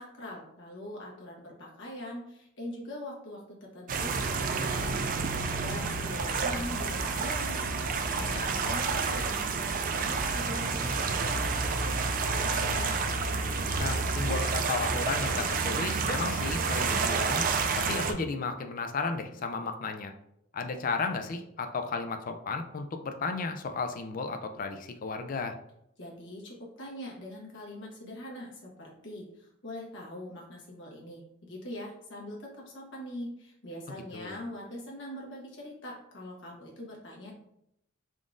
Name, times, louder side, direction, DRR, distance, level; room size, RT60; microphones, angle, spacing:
voice 1, 0.0-7.6 7.9-11.8 12.3-12.9 26.0-37.3, left 1 dB, 60° left, -3 dB, 1.2 m, -42 dB
sound 1, 3.9-18.1, right 4 dB, 40° right, 0.3 m, -29 dB
voice 2, 8.2-8.6 13.8-17.4 17.9-20.1 20.5-25.6 34.1-34.4, left 4 dB, 40° left, 7 dB, 0.4 m, -34 dB
3.7 x 3.6 x 2.5 m, 0.78 s
head